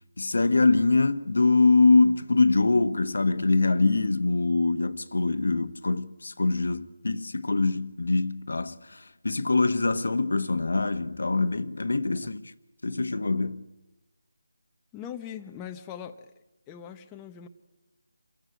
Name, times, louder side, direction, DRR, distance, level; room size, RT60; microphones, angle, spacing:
voice 1, 0.2-12.4 12.8-13.7, left 3 dB, 70° left, 1.2 m, -24 dB
voice 2, 14.9-16.3 16.7-17.5, left 9 dB, 15° left, 0.9 m, -41 dB
27.5 x 16.0 x 9.2 m
figure-of-eight pair, 160°, 0 cm